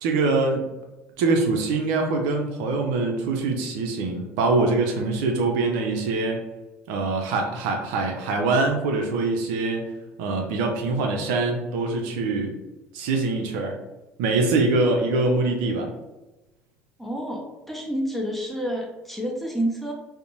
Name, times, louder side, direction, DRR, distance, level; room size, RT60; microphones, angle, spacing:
voice 1, 0.0-0.7 1.2-6.4 6.9-9.9 10.2-12.6 12.9-13.8 14.2-15.9, right 3 dB, 65° right, 3 dB, 0.4 m, -24 dB
voice 2, 17.0-19.9, equal, ahead, -1 dB, 0.7 m, -29 dB
2.5 x 2.0 x 2.8 m, 1.0 s
figure-of-eight pair, 60°, 7 cm